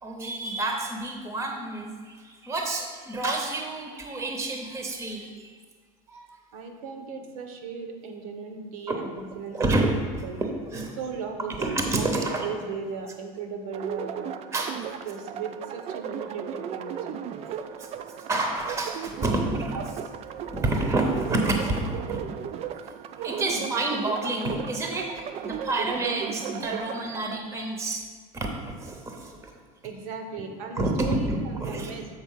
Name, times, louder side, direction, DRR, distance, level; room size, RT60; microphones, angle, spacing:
voice 1, 0.0-5.6 6.1-6.4 8.9-9.0 9.5-11.0 11.6-12.5 14.5-14.8 17.4-17.5 17.8-17.9 18.2-19.9 20.5-22.2 22.8-28.0 28.3-29.5 30.8-31.9, right 2 dB, 15° right, 3 dB, 0.8 m, -29 dB
voice 2, 6.5-9.7 10.2-10.4 11.0-14.3 15.0-17.1 29.8-32.1, right 5 dB, 85° right, 5 dB, 1.1 m, -36 dB
sound 1, 13.7-27.4, right 8 dB, 35° right, 0.4 m, -36 dB
7.2 x 4.1 x 5.6 m, 1.5 s
supercardioid pair, 130°, 18 cm